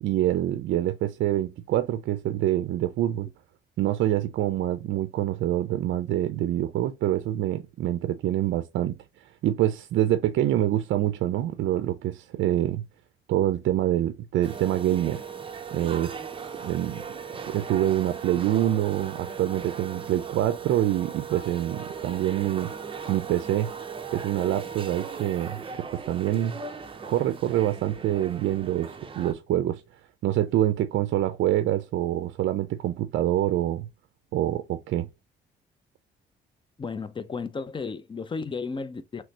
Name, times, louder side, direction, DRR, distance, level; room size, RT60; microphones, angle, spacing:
voice 1, 0.0-3.3 3.8-9.0 9.4-12.8 13.3-15.2 15.7-16.1 16.6-17.0 17.5-22.7 23.1-23.7 24.1-26.6 27.1-29.8 30.2-33.9 34.3-35.1, right 13 dB, 75° right, 0.4 m, -26 dB
sound 1, 14.4-29.3, right 6 dB, 25° right, 0.6 m, -38 dB
voice 2, 36.8-39.2, left 4 dB, 25° left, 0.5 m, -33 dB
3.2 x 3.1 x 2.7 m
cardioid pair, 90°, 20 cm